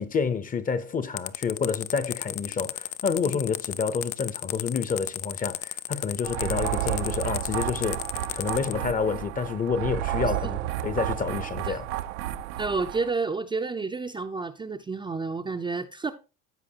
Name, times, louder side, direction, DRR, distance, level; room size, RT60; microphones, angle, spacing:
voice 1, 0.0-8.0 8.3-11.9, left 5 dB, 25° left, 0.8 m, -29 dB
sound 1, 1.2-8.7, left 16 dB, 80° left, 0.7 m, -33 dB
sound 2, 6.2-13.1, right 13 dB, 85° right, 0.8 m, -31 dB
voice 2, 12.6-16.1, right 4 dB, 15° right, 0.5 m, -30 dB
14.0 x 4.8 x 2.9 m
supercardioid pair, 110°, 35 cm